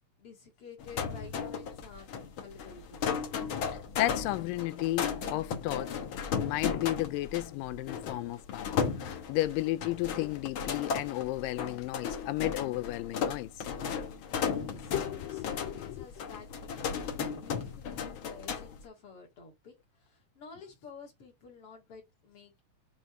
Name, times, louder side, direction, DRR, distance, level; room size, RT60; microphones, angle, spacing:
voice 1, 0.2-2.1 2.4-3.1 14.5-22.6, left 5 dB, 45° left, 2.7 m, -52 dB
sound 1, 0.8-18.8, left 6 dB, 60° left, 1.3 m, -35 dB
voice 2, 4.0-6.0 6.4-13.7 14.9-16.1, left 16 dB, 85° left, 2.3 m, -33 dB
6.4 x 3.9 x 6.0 m
omnidirectional pair, 3.9 m